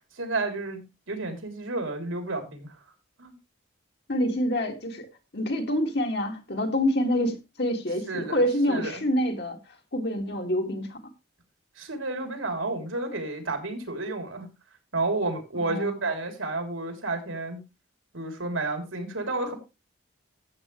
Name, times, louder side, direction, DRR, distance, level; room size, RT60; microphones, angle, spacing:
voice 1, 0.2-2.8 3.2-3.3 8.1-9.0 11.8-14.5 14.9-17.6 18.1-19.5, right 2 dB, 85° right, 3.3 m, -31 dB
voice 2, 4.1-5.1 5.3-9.6 9.9-11.0 15.6-15.9, equal, 55° left, 2.1 m, -26 dB
14.0 x 8.1 x 3.1 m
head